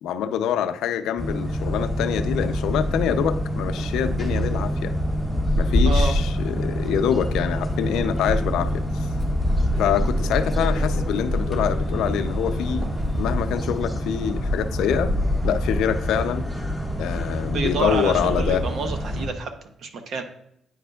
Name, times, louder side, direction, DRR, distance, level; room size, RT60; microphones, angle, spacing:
voice 1, 0.0-4.9 5.6-9.1 9.8-12.9 13.2-15.1 15.4-16.5 17.0-18.6, left 9 dB, 85° left, 9 dB, 0.4 m, -25 dB
sound 1, 1.2-19.3, equal, 10° right, 1.6 m, -25 dB
Sliding door, 3.7-13.8, equal, 30° right, 2.1 m, -34 dB
voice 2, 5.8-6.2 17.3-19.5 19.8-20.2, right 4 dB, 65° right, 7 dB, 0.9 m, -28 dB
9.2 x 5.0 x 2.3 m, 0.75 s
cardioid pair, 90°, 0 cm